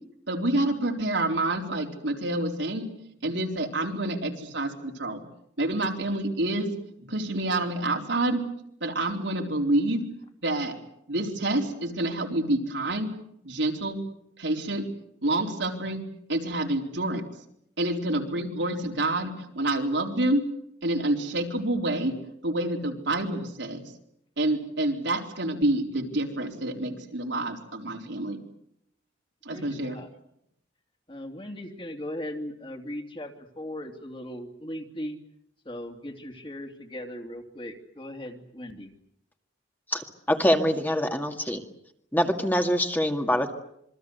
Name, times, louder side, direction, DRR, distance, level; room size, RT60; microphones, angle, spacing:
voice 1, 0.3-2.8 3.2-5.2 5.6-6.7 7.1-8.4 8.8-10.0 10.4-10.8 11.1-13.1 13.4-14.0 14.4-14.9 15.2-16.0 16.3-17.2 17.8-20.4 20.8-22.2 22.4-23.8 24.4-28.4 29.5-30.0, right 1 dB, 75° right, 2 dB, 4.2 m, -27 dB
voice 2, 29.5-30.1 31.1-35.2 35.6-38.9, left 1 dB, 30° left, 3 dB, 2.9 m, -38 dB
voice 3, 39.9-41.6 42.1-43.5, equal, 10° left, 4 dB, 2.0 m, -24 dB
27.0 x 23.5 x 8.1 m, 0.75 s
head